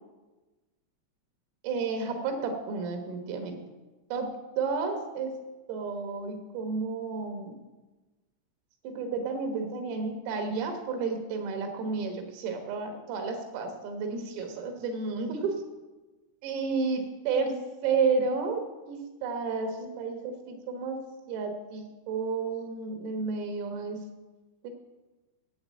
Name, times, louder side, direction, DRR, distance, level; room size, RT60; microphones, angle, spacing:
voice 1, 1.6-3.6 4.1-5.4 5.7-7.6 8.8-15.6 16.4-21.0 21.3-24.0 24.6-24.7, right 4 dB, 90° right, 4 dB, 4.2 m, -31 dB
8.6 x 8.3 x 8.4 m, 1.2 s
omnidirectional pair, 5.8 m